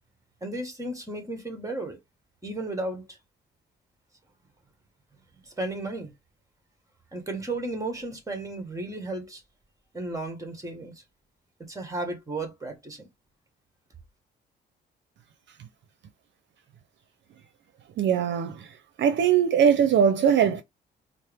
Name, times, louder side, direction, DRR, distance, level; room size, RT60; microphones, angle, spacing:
voice 1, 0.4-2.0 2.4-3.2 5.5-6.1 7.1-9.4 9.9-11.0 11.6-13.1, right 2 dB, 15° right, 1.6 m, -34 dB
voice 2, 18.0-18.7 19.0-20.6, right 8 dB, 65° right, 0.7 m, -21 dB
4.3 x 2.1 x 3.5 m
cardioid pair, 90°, 20 cm